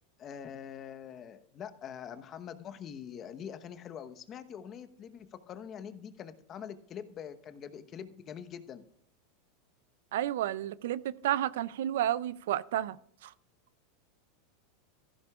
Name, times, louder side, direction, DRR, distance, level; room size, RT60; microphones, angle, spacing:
voice 1, 0.2-8.8, left 8 dB, 35° left, 1.0 m, -44 dB
voice 2, 10.1-13.0 13.2-13.3, right 12 dB, 80° right, 0.4 m, -31 dB
14.0 x 11.5 x 2.4 m
supercardioid pair, 125°, 0 cm